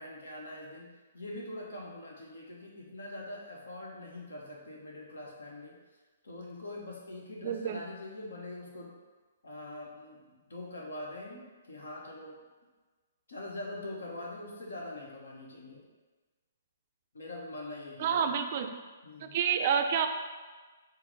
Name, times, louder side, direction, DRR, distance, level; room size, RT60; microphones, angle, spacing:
voice 1, 0.0-5.8 6.2-8.9 9.4-12.4 13.3-15.8 17.1-18.3 19.0-19.4, left 1 dB, 80° left, -2 dB, 1.1 m, -43 dB
voice 2, 7.4-7.8 18.0-18.7 19.2-20.1, right 7 dB, 45° right, 6 dB, 0.4 m, -28 dB
5.7 x 2.1 x 4.0 m, 1.3 s
hypercardioid pair, 130°, 0 cm